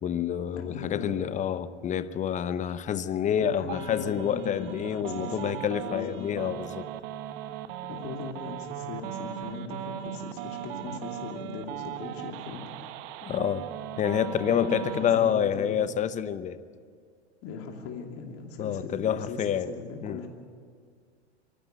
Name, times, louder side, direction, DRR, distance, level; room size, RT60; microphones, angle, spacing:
voice 1, 0.0-6.9 13.2-13.7 14.0-16.6 18.6-19.7 20.0-20.2, left 9 dB, 20° left, 15 dB, 0.8 m, -28 dB
voice 2, 0.5-1.1 3.3-6.3 7.9-12.9 14.5-15.8 17.4-19.4 19.7-20.3, left 5 dB, 45° left, 2 dB, 2.8 m, -39 dB
sound 1, 3.7-15.3, right 12 dB, 50° right, 1.1 m, -38 dB
24.5 x 12.0 x 9.1 m, 2.1 s
hypercardioid pair, 105°, 33 cm